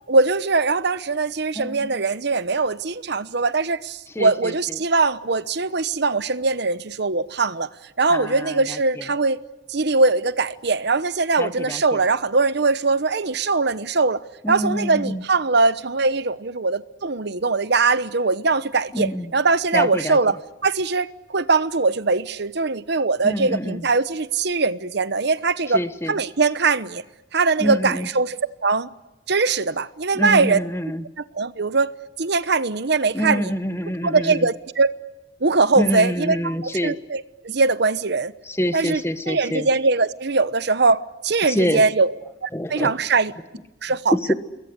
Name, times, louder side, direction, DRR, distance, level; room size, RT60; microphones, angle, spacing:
voice 1, 0.1-7.7 8.0-9.4 9.7-14.2 14.5-20.4 20.6-25.8 26.1-27.0 27.3-28.4 28.6-28.9 29.3-30.6 31.3-31.9 32.2-33.5 34.0-34.9 35.4-36.4 36.6-38.3 38.7-39.0 39.3-42.1 42.4-43.3 43.8-44.1, right 3 dB, 60° right, 1.0 m, -21 dB
voice 2, 1.5-1.9 4.1-4.8 8.1-9.1 11.4-12.0 14.4-15.2 18.9-19.3 19.7-20.4 23.2-23.9 25.7-26.2 27.6-28.1 30.1-31.1 33.1-34.5 35.7-37.0 38.4-39.7 41.4-41.8 42.5-43.0 44.1-44.3, equal, 15° left, 1.3 m, -26 dB
28.0 x 22.0 x 8.2 m
head